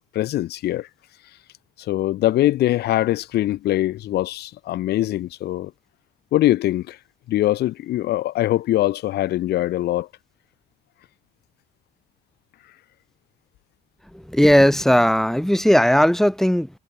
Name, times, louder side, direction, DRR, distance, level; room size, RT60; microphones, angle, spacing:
voice 1, 0.1-0.9 1.8-5.7 6.3-7.0 7.3-10.1, left 14 dB, 75° left, 6.9 m, -22 dB
voice 2, 14.1-16.7, equal, ahead, 7.9 m, -17 dB
cardioid pair, 110°, 17 cm